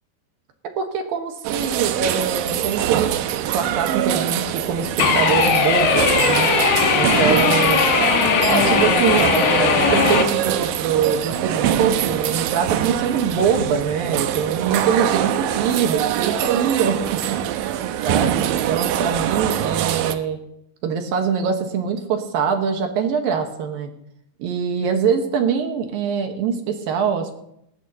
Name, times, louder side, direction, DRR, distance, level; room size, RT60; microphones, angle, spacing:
voice 1, 0.8-3.1 3.4-6.5 6.9-7.8 8.5-17.0 17.3-17.7 18.0-20.4 20.8-23.9 24.4-27.3, right 7 dB, 70° right, 4 dB, 2.8 m, -23 dB
sound 1, 1.4-20.2, right 11 dB, 85° right, 1.9 m, -24 dB
sound 2, 5.0-10.2, left 6 dB, 75° left, 3.4 m, -18 dB
19.0 x 15.0 x 2.9 m, 0.77 s
omnidirectional pair, 4.8 m